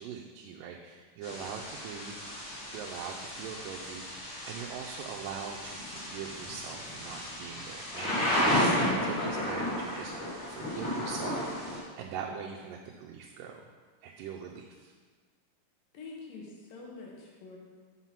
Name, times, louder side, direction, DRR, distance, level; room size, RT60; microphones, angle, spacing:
voice 1, 0.0-10.2 10.5-13.6 14.0-14.9, right 6 dB, 90° right, 0 dB, 2.2 m, -42 dB
Thunder / Rain, 1.2-11.8, left 1 dB, 35° left, 1.4 m, -33 dB
voice 2, 15.9-17.6, left 3 dB, 85° left, -1 dB, 2.9 m, -45 dB
5.8 x 5.4 x 5.8 m, 1.5 s
omnidirectional pair, 3.8 m